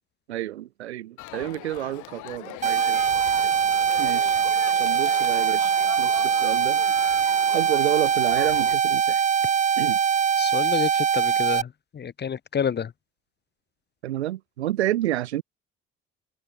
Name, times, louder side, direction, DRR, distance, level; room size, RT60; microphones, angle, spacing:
voice 1, 0.3-3.0 4.0-4.4 4.8-6.9 7.5-9.2 9.8-10.0 14.0-15.4, right 14 dB, 85° right, 1.8 m, -29 dB
Crowd, 1.2-8.7, left 19 dB, 65° left, 4.1 m, -40 dB
sound 1, 2.6-11.6, right 7 dB, 25° right, 0.5 m, -22 dB
voice 2, 10.4-12.9, left 7 dB, 35° left, 0.9 m, -29 dB
open air
hypercardioid pair, 55°, 32 cm